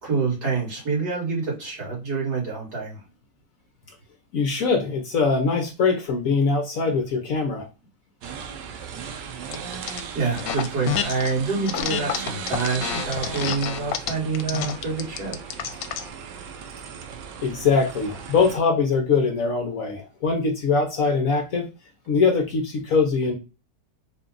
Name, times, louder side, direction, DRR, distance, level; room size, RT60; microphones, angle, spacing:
voice 1, 0.0-3.0 9.7-15.4, right 4 dB, 60° right, -4 dB, 2.4 m, -27 dB
voice 2, 4.3-7.7 17.4-21.7 22.1-23.3, left 4 dB, 60° left, 3 dB, 1.0 m, -22 dB
sound 1, 8.2-18.6, right 7 dB, 75° right, 1.3 m, -37 dB
sound 2, 9.5-10.0 10.4-11.3 11.7-16.1, left 9 dB, 80° left, 1.2 m, -28 dB
4.2 x 2.3 x 3.7 m, 0.29 s
omnidirectional pair, 1.9 m